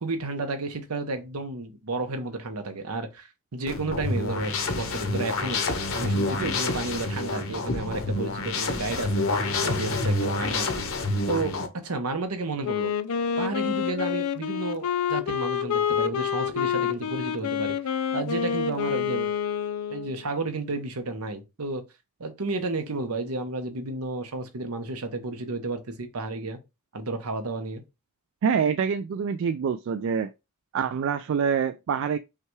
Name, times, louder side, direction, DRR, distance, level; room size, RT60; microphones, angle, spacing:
voice 1, 0.0-5.6 5.9-9.3 9.6-10.8 11.3-12.9 13.4-17.8 18.1-19.4 19.9-21.8 22.2-26.6 26.9-27.8, right 3 dB, 80° right, 0.9 m, -32 dB
sound 1, 3.7-11.7, left 2 dB, 65° left, 0.8 m, -28 dB
Wind instrument woodwind instrument, 12.6-20.3, left 8 dB, 85° left, 0.4 m, -28 dB
voice 2, 28.4-30.3 30.7-32.2, right 6 dB, 60° right, 0.3 m, -25 dB
5.6 x 2.3 x 3.1 m
head